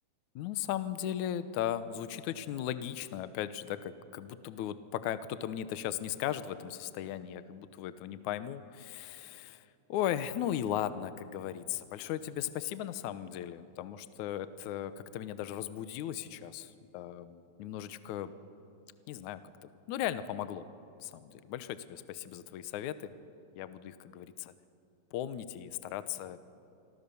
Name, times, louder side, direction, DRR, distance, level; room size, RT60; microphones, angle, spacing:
voice 1, 0.3-18.3 19.1-20.6 21.0-23.1 23.5-24.5 25.1-26.4, left 11 dB, 90° left, 12 dB, 1.7 m, -37 dB
28.5 x 24.0 x 7.0 m, 2.7 s
omnidirectional pair, 4.8 m